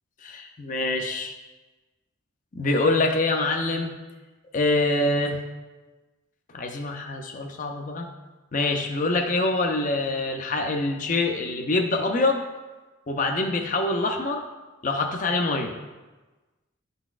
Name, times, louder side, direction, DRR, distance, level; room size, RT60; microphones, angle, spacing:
voice 1, 0.2-1.3 2.5-3.9 4.5-5.4 6.5-8.1 8.5-12.4 13.1-14.4 14.8-15.8, left 2 dB, 35° left, 3 dB, 0.5 m, -25 dB
11.0 x 4.0 x 2.4 m, 1.2 s
head